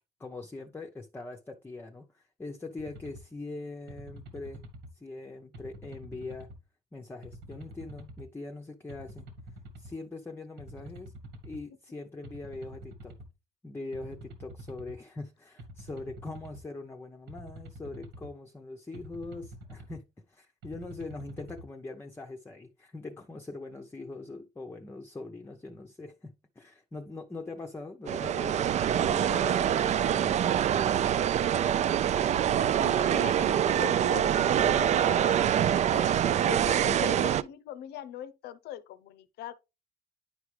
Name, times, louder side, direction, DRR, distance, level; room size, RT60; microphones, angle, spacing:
voice 1, 0.2-4.6 4.9-6.5 6.9-9.3 9.8-11.1 11.4-13.2 13.6-30.6, left 2 dB, 15° left, 0.7 m, -42 dB
sound 1, 2.8-3.2 3.9-4.9 5.5-6.6 7.2-8.3 8.9-9.9 10.6-11.6 12.2-13.3 13.9-15.0 15.6-16.6 17.3-18.3 18.9-20.0 20.6-21.6, right 1 dB, 85° right, 2.0 m, -46 dB
sound 2, 28.1-37.4, right 10 dB, 45° right, 0.4 m, -25 dB
voice 2, 32.8-36.1 36.5-39.5, left 11 dB, 75° left, 0.7 m, -41 dB
10.0 x 4.8 x 3.2 m
cardioid pair, 110°, 17 cm